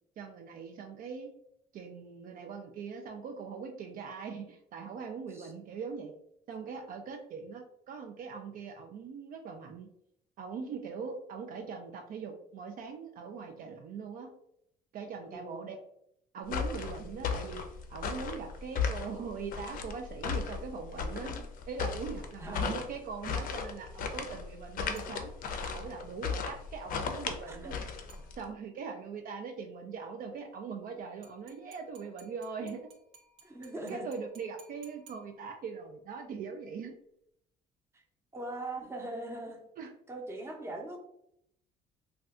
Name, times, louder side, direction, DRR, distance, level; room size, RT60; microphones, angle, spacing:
voice 1, 0.2-1.3 1.7-6.1 6.5-9.9 10.4-14.3 14.9-15.8 16.3-17.6 17.9-21.3 21.7-25.3 25.6-27.8 28.4-32.9 33.9-37.0 39.8-39.9, right 5 dB, 55° right, 4 dB, 0.4 m, -41 dB
voice 2, 15.3-15.6 21.1-21.4 22.4-22.7 27.5-27.8 33.4-34.1 38.3-39.6 40.1-41.0, right 2 dB, 15° right, 1 dB, 0.7 m, -41 dB
sound 1, 16.4-28.4, left 6 dB, 55° left, 0.5 m, -36 dB
sound 2, 25.0-25.8 28.1-28.8 31.2-35.8, right 5 dB, 85° right, 0.7 m, -60 dB
2.5 x 2.3 x 3.5 m, 0.74 s
cardioid pair, 110°, 17 cm